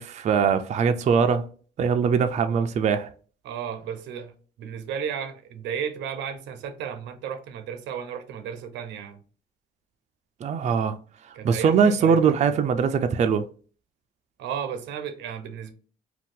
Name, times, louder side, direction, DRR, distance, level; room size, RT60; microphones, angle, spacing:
voice 1, 0.0-1.5 1.8-3.1 10.4-11.0 11.4-13.5, right 6 dB, 40° right, 0.4 m, -21 dB
voice 2, 3.4-9.2 11.3-12.4 14.4-15.7, right 8 dB, 85° right, 0.6 m, -34 dB
2.7 x 2.3 x 3.6 m
cardioid pair, 90°, 18 cm